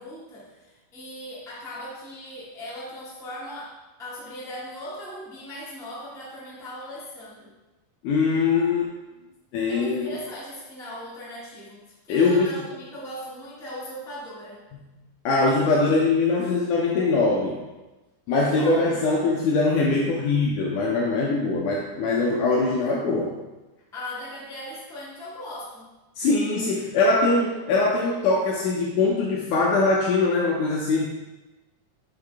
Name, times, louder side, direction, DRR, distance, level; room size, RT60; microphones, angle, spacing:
voice 1, 0.0-3.7 4.0-7.5 9.7-14.6 18.3-19.0 23.9-25.8, left 1 dB, 5° left, -9 dB, 0.5 m, -38 dB
voice 2, 8.0-8.9 9.5-10.1 12.1-12.6 15.3-17.6 18.3-23.4 26.2-31.1, left 3 dB, 75° left, -2 dB, 1.9 m, -22 dB
6.4 x 5.4 x 3.5 m, 1.1 s
omnidirectional pair, 4.3 m